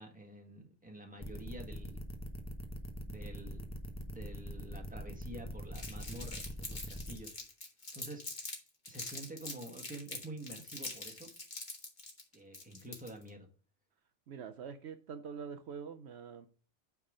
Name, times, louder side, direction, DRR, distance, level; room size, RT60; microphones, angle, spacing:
voice 1, 0.0-2.0 3.1-3.6 4.0-7.4 7.9-8.2 8.9-11.3 12.3-13.5, right 1 dB, 5° right, 1.4 m, -48 dB
sound 1, 1.2-7.2, equal, 15° left, 0.7 m, -43 dB
Crumpling crinkling, 5.7-8.6 8.8-13.3, left 2 dB, 40° left, 1.8 m, -44 dB
voice 2, 14.3-16.5, right 6 dB, 70° right, 0.9 m, -45 dB
8.9 x 3.6 x 4.9 m
omnidirectional pair, 1.2 m